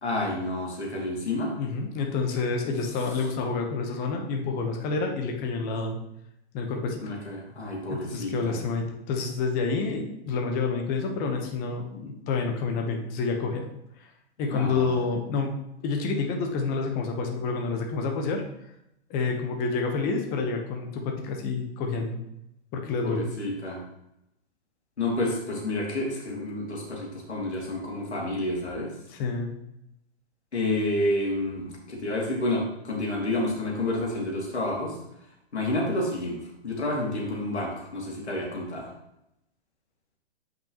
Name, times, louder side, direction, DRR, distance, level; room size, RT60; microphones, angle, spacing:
voice 1, 0.0-1.5 7.0-8.6 14.5-15.0 23.0-23.8 25.0-28.9 30.5-34.9 35.5-36.4 36.6-38.9, left 1 dB, 90° left, -2 dB, 2.5 m, -29 dB
voice 2, 1.6-6.0 6.5-7.0 7.9-13.7 14.0-14.1 14.4-15.5 15.8-18.4 19.1-22.2 22.7-23.3 29.1-29.6, left 4 dB, 25° left, 3 dB, 1.1 m, -28 dB
8.5 x 5.4 x 3.0 m, 0.82 s
hypercardioid pair, 125°, 33 cm